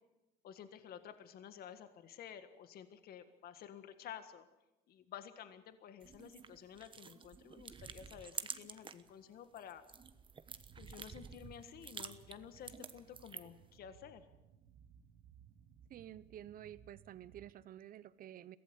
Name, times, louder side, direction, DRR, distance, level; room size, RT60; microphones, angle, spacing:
voice 1, 0.4-4.5 4.9-9.8 10.8-14.2, left 9 dB, 65° left, 10 dB, 1.7 m, -52 dB
sound 1, 6.0-9.1 9.4-13.6, right 6 dB, 30° right, 1.1 m, -49 dB
sound 2, 10.5-17.5, right 8 dB, 75° right, 1.6 m, -62 dB
voice 2, 15.9-18.6, right 11 dB, 55° right, 17 dB, 0.9 m, -51 dB
22.5 x 16.0 x 8.1 m, 0.96 s
cardioid pair, 110°, 17 cm